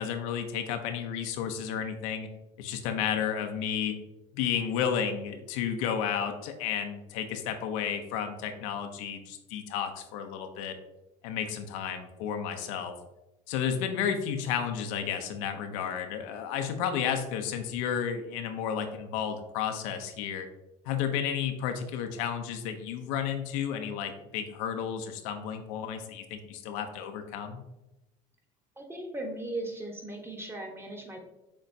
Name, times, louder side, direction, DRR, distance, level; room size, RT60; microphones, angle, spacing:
voice 1, 0.0-2.3 2.6-3.9 4.3-10.7 11.2-12.9 13.5-20.5 20.9-27.6, left 8 dB, 80° left, 6 dB, 0.6 m, -32 dB
voice 2, 28.8-31.2, right 1 dB, 15° right, 1 dB, 1.0 m, -37 dB
6.6 x 3.0 x 2.6 m, 0.96 s
supercardioid pair, 90°, 16 cm